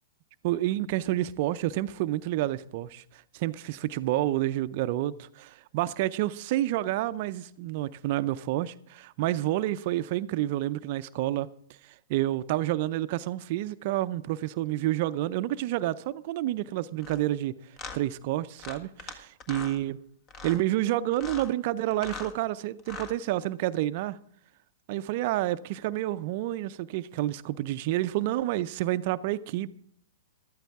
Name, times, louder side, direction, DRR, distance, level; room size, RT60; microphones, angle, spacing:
voice 1, 0.4-11.5 12.1-17.5 17.9-20.0 20.4-24.2 24.9-29.7, right 15 dB, 50° right, 0.5 m, -29 dB
sound 1, 17.0-17.2 17.8-18.0 18.6-19.1 19.4-19.8 20.3-20.6 21.1-21.5 21.9-22.3 22.8-23.2, left 4 dB, 35° left, 1.7 m, -40 dB
14.0 x 12.5 x 3.6 m
hypercardioid pair, 115°, 0 cm